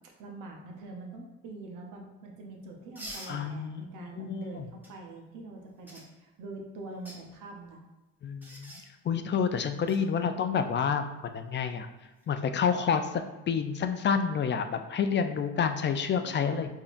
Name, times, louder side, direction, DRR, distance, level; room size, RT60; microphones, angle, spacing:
voice 1, 0.0-7.8 9.9-10.3 16.2-16.7, right 2 dB, 90° right, 1 dB, 0.8 m, -44 dB
sound 1, 3.0-3.3 4.8-4.9 5.9-6.1 6.9-7.2 8.4-8.8 9.9-10.0 12.0-12.3, equal, 5° right, 1.0 m, -44 dB
voice 2, 3.3-4.7 8.2-8.7 9.0-11.9 12.3-16.7, left 6 dB, 40° left, 8 dB, 0.4 m, -29 dB
4.9 x 2.7 x 2.5 m, 1.1 s
cardioid pair, 90°, 30 cm